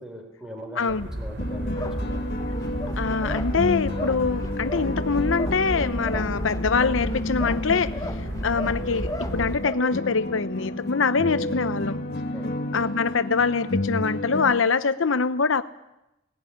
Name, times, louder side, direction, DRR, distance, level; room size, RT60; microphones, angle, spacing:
voice 1, 0.0-2.2 12.3-12.5, equal, 5° right, 2 dB, 4.1 m, -41 dB
voice 2, 0.8-1.1 3.0-8.0 8.4-12.0 12.7-15.6, left 5 dB, 80° left, 13 dB, 0.8 m, -24 dB
sound 1, 0.9-9.6, right 1 dB, 60° right, 3.3 m, -32 dB
sound 2, 1.4-14.5, left 1 dB, 55° left, 1.7 m, -31 dB
sound 3, 1.8-9.8, left 1 dB, 20° left, 1.1 m, -38 dB
18.5 x 16.5 x 9.9 m, 0.93 s
head